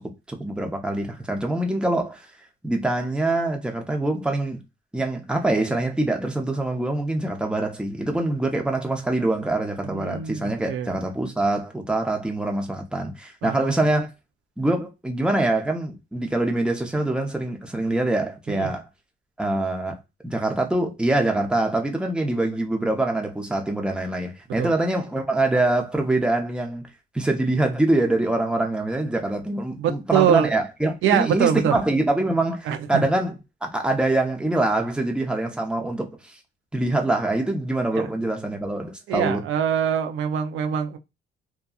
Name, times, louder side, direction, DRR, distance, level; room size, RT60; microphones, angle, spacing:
voice 1, 0.3-2.3 2.6-4.6 4.9-14.1 14.6-18.8 19.4-20.0 20.2-26.9 27.1-36.4 36.7-39.4, right 2 dB, 5° right, 0.7 m, -24 dB
voice 2, 9.8-10.9 13.4-13.7 18.5-18.7 24.6-24.7 29.8-30.6 31.0-31.8 32.7-33.0 37.9-38.1 39.1-41.0, right 9 dB, 80° right, 0.5 m, -24 dB
2.7 x 2.3 x 2.3 m
cardioid pair, 90°, 20 cm